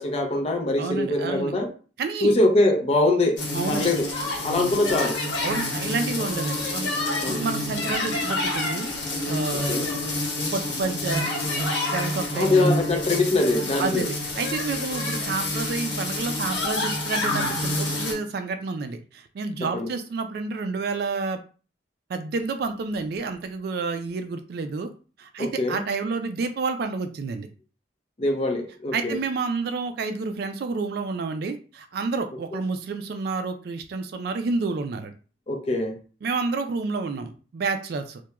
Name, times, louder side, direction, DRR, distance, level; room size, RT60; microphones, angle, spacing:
voice 1, 0.0-1.7 2.2-3.4 3.7-4.1 4.4-5.2 7.2-7.4 9.7-9.9 12.3-14.0 19.7-19.9 25.4-25.8 28.2-29.2 35.5-35.9, left 2 dB, 35° left, 4 dB, 0.5 m, -23 dB
voice 2, 0.8-1.5 2.0-2.4 3.5-3.9 5.4-8.9 9.3-9.9 10.5-11.3 11.9-12.7 13.8-21.4 22.1-24.9 25.2-27.5 28.9-35.1 36.2-38.2, right 4 dB, 60° right, 7 dB, 0.3 m, -29 dB
sound 1, 3.4-18.1, left 1 dB, 80° left, 0.9 m, -28 dB
2.9 x 2.1 x 2.2 m, 0.37 s
head